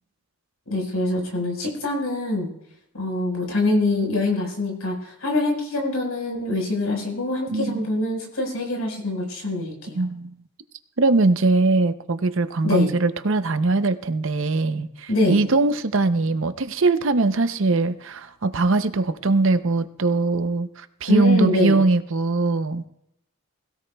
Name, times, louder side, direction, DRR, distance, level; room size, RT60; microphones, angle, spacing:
voice 1, 0.7-2.5 2.9-10.0 12.6-12.9 15.1-15.5 21.1-21.8, left 2 dB, 85° left, 1 dB, 4.8 m, -24 dB
voice 2, 7.5-7.9 9.9-10.3 11.0-22.9, right 3 dB, 60° right, 11 dB, 0.6 m, -21 dB
21.0 x 16.5 x 2.3 m, 0.78 s
head